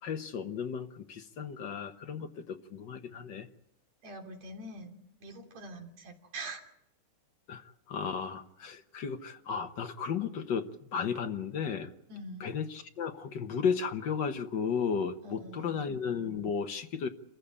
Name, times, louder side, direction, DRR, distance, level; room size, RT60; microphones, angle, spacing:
voice 1, 0.0-3.5 7.5-11.9 12.4-17.1, left 6 dB, 55° left, 7 dB, 1.2 m, -34 dB
voice 2, 4.0-6.6 12.1-12.5 15.2-15.8, right 2 dB, 60° right, 2 dB, 4.2 m, -44 dB
28.0 x 15.0 x 8.7 m, 0.78 s
omnidirectional pair, 3.5 m